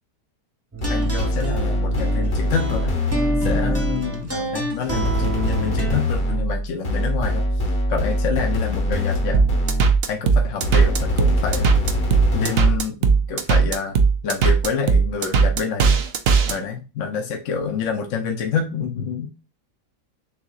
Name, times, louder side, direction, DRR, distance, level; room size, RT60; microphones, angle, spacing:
sound 1, 0.7-6.0, right 2 dB, 10° right, 0.8 m, -28 dB
sound 2, 0.8-4.1 5.0-10.1 10.6-12.8, left 1 dB, 35° left, 1.3 m, -23 dB
voice 1, 0.9-2.9 3.4-9.4 10.1-11.7 12.3-14.0 14.2-16.0 16.5-19.3, left 6 dB, 60° left, 2 dB, 0.9 m, -27 dB
sound 3, 9.3-16.5, right 5 dB, 75° right, 0.5 m, -17 dB
6.9 x 2.8 x 2.4 m, 0.32 s
omnidirectional pair, 1.8 m